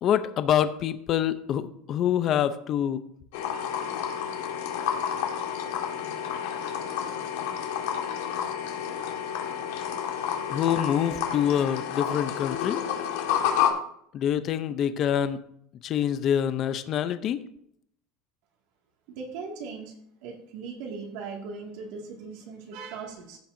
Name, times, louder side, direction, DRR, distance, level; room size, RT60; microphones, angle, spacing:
voice 1, 0.0-3.0 10.5-12.8 14.1-15.4 15.8-17.4, left 9 dB, 30° left, 11 dB, 0.5 m, -26 dB
sound 1, 3.3-13.7, left 9 dB, 70° left, 1.7 m, -30 dB
voice 2, 19.1-19.9 20.2-23.4, right 5 dB, 60° right, 0 dB, 2.0 m, -39 dB
15.5 x 7.3 x 2.6 m, 0.70 s
cardioid pair, 175°, 0 cm